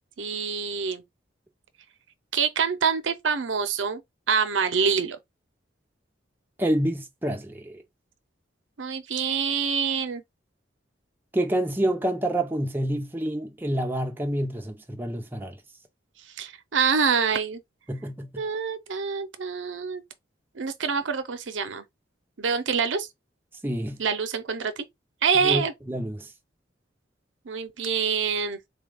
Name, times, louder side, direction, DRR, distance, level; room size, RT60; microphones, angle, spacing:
voice 1, 0.2-1.0 2.3-4.0 4.3-5.2 8.8-10.2 16.4-17.6 18.4-20.0 20.5-21.8 22.4-23.1 24.0-24.9 25.2-25.7 27.5-28.6, right 6 dB, 85° right, 0.7 m, -26 dB
voice 2, 6.6-7.8 11.3-15.6 17.9-18.4 23.6-24.0 25.4-26.3, right 1 dB, 10° right, 0.6 m, -28 dB
4.0 x 2.4 x 3.4 m
head